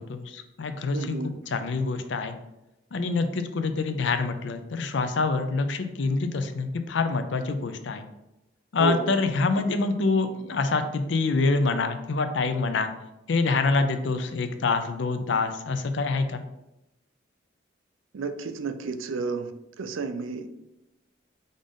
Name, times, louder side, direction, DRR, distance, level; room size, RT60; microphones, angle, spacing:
voice 1, 0.0-1.2 1.5-2.3 2.9-8.0 8.7-12.9 13.3-16.4, left 3 dB, 65° left, 8 dB, 0.5 m, -26 dB
voice 2, 0.9-1.3 8.8-9.2 18.1-19.5 19.8-20.6, right 4 dB, 90° right, 9 dB, 0.4 m, -31 dB
5.1 x 2.6 x 3.6 m, 0.92 s
head